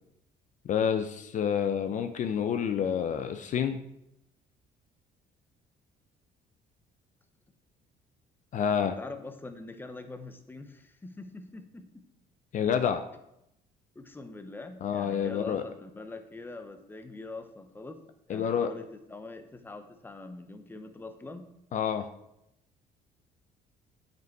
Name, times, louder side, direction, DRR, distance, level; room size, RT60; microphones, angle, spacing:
voice 1, 0.7-3.8 8.5-9.0 12.5-13.0 14.8-15.6 18.3-18.7 21.7-22.1, left 8 dB, 50° left, 8 dB, 0.5 m, -28 dB
voice 2, 9.0-12.0 14.0-18.0 18.3-21.5, left 3 dB, 10° left, 8 dB, 0.7 m, -43 dB
8.0 x 5.2 x 4.6 m, 0.82 s
cardioid pair, 110°, 17 cm